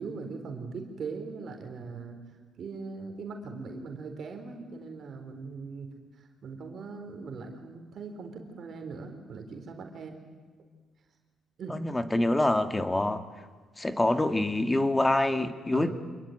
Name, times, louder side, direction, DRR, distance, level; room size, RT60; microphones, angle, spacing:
voice 1, 0.0-2.2 2.6-10.2 11.6-11.8 15.7-15.9, right 4 dB, 55° right, 4 dB, 4.0 m, -40 dB
voice 2, 11.7-13.2 13.8-15.9, left 1 dB, 15° left, 9 dB, 1.9 m, -26 dB
26.5 x 21.0 x 9.2 m, 1.4 s
cardioid pair, 90°, 0 cm